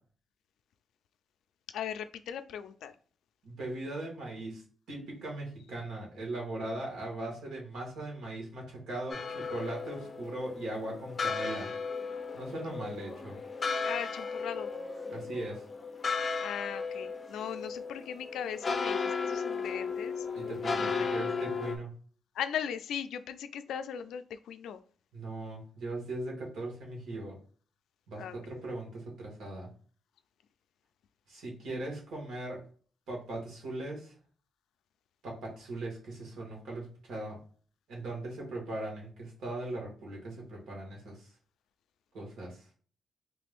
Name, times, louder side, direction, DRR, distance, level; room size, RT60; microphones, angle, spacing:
voice 1, 1.7-2.9 13.8-14.7 16.4-20.3 20.7-21.5 22.3-24.8 28.2-28.7, left 8 dB, 90° left, 11 dB, 0.3 m, -39 dB
voice 2, 3.4-4.6 4.9-11.7 12.3-13.4 15.1-15.6 20.3-21.9 25.1-27.4 28.1-29.7 31.3-32.6 33.1-34.1 35.2-37.4 37.9-41.3 42.1-42.6, right 2 dB, 80° right, -1 dB, 1.7 m, -39 dB
sound 1, 9.1-21.8, left 5 dB, 30° left, 0.6 m, -35 dB
3.2 x 2.5 x 3.5 m, 0.44 s
wide cardioid pair, 170°, 0 cm